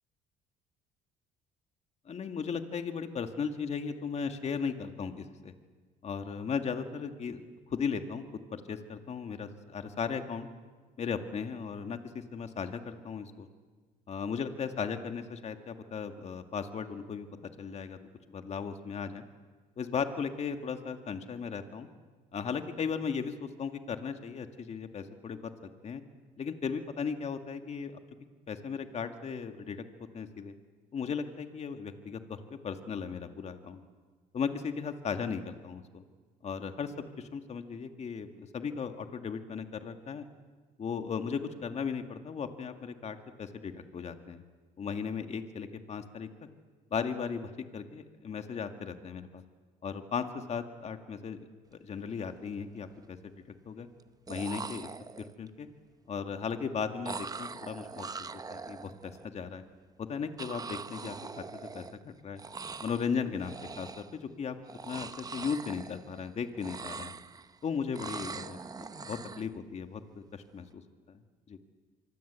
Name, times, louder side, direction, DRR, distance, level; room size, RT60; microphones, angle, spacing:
voice 1, 2.1-5.5 6.0-7.4 7.7-8.2 8.5-10.5 11.0-13.5 14.1-18.0 18.3-19.2 19.8-21.9 22.3-25.5 25.8-26.0 26.4-27.9 28.5-29.8 30.1-30.5 30.9-33.8 34.3-36.0 36.4-40.3 40.8-44.4 44.8-46.3 46.9-49.4 49.8-53.9 54.3-54.9 55.4-55.7 56.1-58.1 58.5-59.6 60.0-62.4 62.8-64.6 64.8-67.1 67.6-70.8 71.1-71.2 71.5-71.6, left 6 dB, 40° left, 7 dB, 2.0 m, -36 dB
sound 1, 51.8-52.0 52.4-53.0 54.0-54.1 54.3-55.5 57.0-59.2 60.4-62.1 62.4-63.1 63.4-64.2 64.6-66.3 66.5-67.6 67.9-69.5, right 4 dB, 20° right, 0.8 m, -42 dB
25.0 x 24.0 x 8.3 m, 1.4 s
cardioid pair, 110°, 17 cm